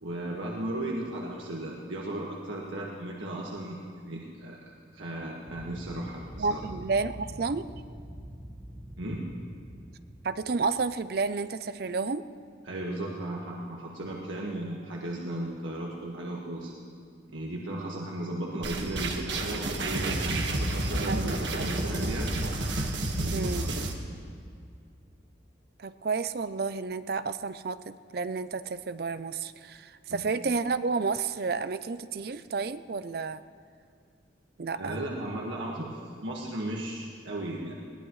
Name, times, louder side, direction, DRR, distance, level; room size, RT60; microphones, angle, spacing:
voice 1, 0.0-4.6 4.9-6.6 9.0-9.2 12.6-16.7 17.3-22.3 23.1-23.9 30.1-30.2 34.7-37.7, right 1 dB, 90° right, -3 dB, 1.6 m, -36 dB
sound 1, 5.5-11.3, equal, 15° right, 1.4 m, -45 dB
voice 2, 6.4-7.7 10.2-12.2 21.1-21.6 23.3-23.6 25.8-33.4 34.6-35.0, right 4 dB, 55° right, 13 dB, 0.5 m, -31 dB
sound 2, 18.6-23.9, right 2 dB, 70° right, 1.6 m, -30 dB
21.0 x 18.0 x 3.2 m, 2.3 s
head